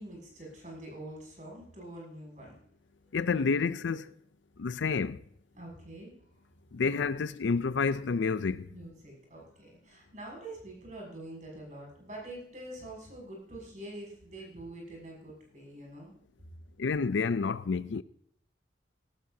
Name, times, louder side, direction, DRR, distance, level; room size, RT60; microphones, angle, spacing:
voice 1, 0.0-2.6 5.5-6.1 8.7-16.1, right 1 dB, 45° right, 6.7 m, -45 dB
voice 2, 3.1-4.1 4.6-5.2 6.7-8.7 16.8-18.0, left 5 dB, 90° left, 0.5 m, -29 dB
17.5 x 14.0 x 2.8 m
head